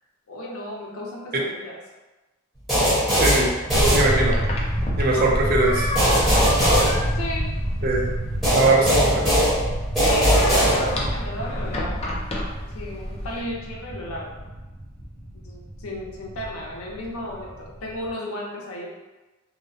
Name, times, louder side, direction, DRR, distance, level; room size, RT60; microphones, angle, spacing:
voice 1, 0.3-1.8 7.1-7.5 9.9-12.1 12.6-14.3 15.3-18.9, left 1 dB, 75° left, -2 dB, 0.6 m, -34 dB
sound 1, 2.7-4.6 5.9-7.7 8.4-11.2, equal, ahead, 1.0 m, -20 dB
voice 2, 3.2-3.5 3.9-4.4 5.0-5.9 7.8-8.1 8.5-9.4, right 2 dB, 45° right, -1 dB, 0.4 m, -21 dB
sound 2, 3.7-18.1, equal, 15° right, 0.7 m, -29 dB
sound 3, 4.2-13.4, left 1 dB, 30° left, 0.4 m, -32 dB
2.7 x 2.0 x 2.6 m, 1.1 s
head